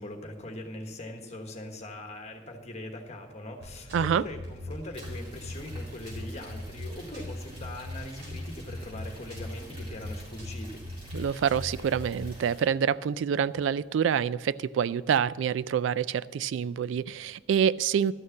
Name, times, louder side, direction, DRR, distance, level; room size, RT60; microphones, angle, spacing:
voice 1, 0.0-10.8, left 1 dB, 35° left, 4 dB, 1.3 m, -41 dB
sound 1, 3.6-12.3, left 1 dB, 65° right, 4.2 m, -40 dB
voice 2, 3.9-4.2 11.1-18.1, right 8 dB, 85° right, 19 dB, 0.3 m, -27 dB
sound 2, 4.9-12.6, equal, 30° right, 3.8 m, -51 dB
12.5 x 6.5 x 7.0 m, 1.3 s
head